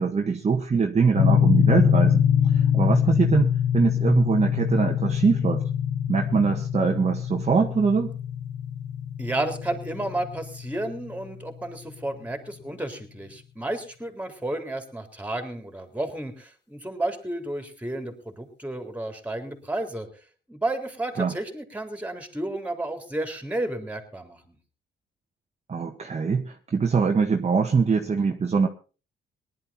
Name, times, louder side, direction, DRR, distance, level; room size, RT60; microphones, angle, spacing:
voice 1, 0.0-2.2 2.5-5.6 6.1-8.1 21.2-21.3 25.7-28.7, right 5 dB, 35° right, 3 dB, 1.6 m, -23 dB
sound 1, 1.2-11.3, left 8 dB, 60° left, 1.0 m, -24 dB
voice 2, 9.2-20.1 20.5-24.5, right 1 dB, 5° right, 6 dB, 3.7 m, -32 dB
19.0 x 11.5 x 4.3 m, 0.35 s
cardioid pair, 90°, 20 cm